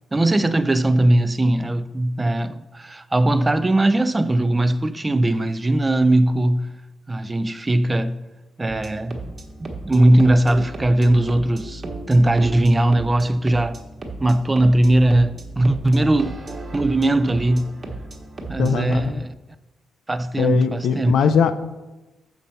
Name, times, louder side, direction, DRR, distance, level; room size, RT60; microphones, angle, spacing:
voice 1, 0.1-6.7 7.1-8.2 8.6-11.8 12.1-13.8 14.2-16.4 16.7-17.8 18.5-19.3 20.1-21.2, right 1 dB, 20° right, 0.4 m, -19 dB
sound 1, 8.7-19.1, right 2 dB, 35° right, 1.2 m, -35 dB
voice 2, 18.6-19.0 20.4-21.5, left 7 dB, 75° left, 0.5 m, -20 dB
7.2 x 5.8 x 5.3 m
cardioid pair, 110°, 0 cm